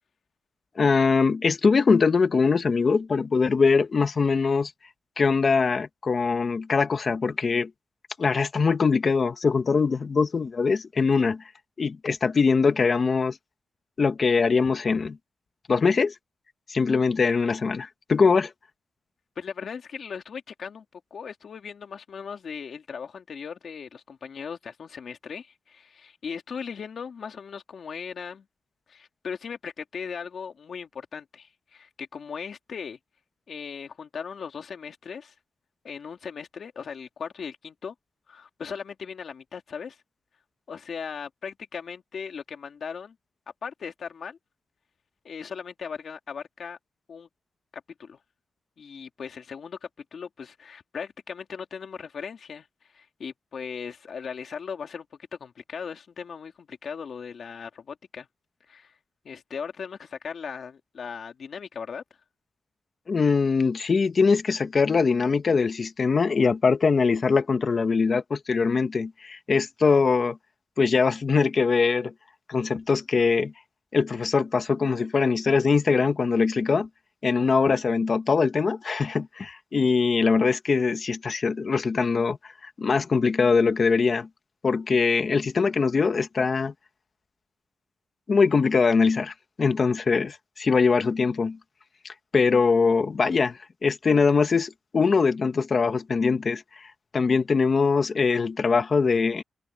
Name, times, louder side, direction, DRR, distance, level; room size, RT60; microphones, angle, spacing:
voice 1, 0.8-4.7 5.2-7.7 8.2-11.4 11.8-13.4 14.0-15.2 15.7-16.1 16.7-18.5 63.1-70.4 70.8-72.1 72.5-73.5 73.9-76.9 77.2-84.3 84.6-86.7 88.3-91.6 92.3-96.9 97.1-99.4, left 5 dB, 40° left, 1.3 m, -22 dB
voice 2, 19.4-28.5 28.9-33.0 33.5-35.3 35.8-37.9 38.3-40.0 40.7-43.2 43.6-44.4 45.2-46.8 47.1-47.3 48.0-48.2 48.8-52.7 52.9-55.1 55.4-58.3 58.7-59.0 59.2-62.0, left 6 dB, 55° left, 2.7 m, -38 dB
wide cardioid pair, 145°, 0 cm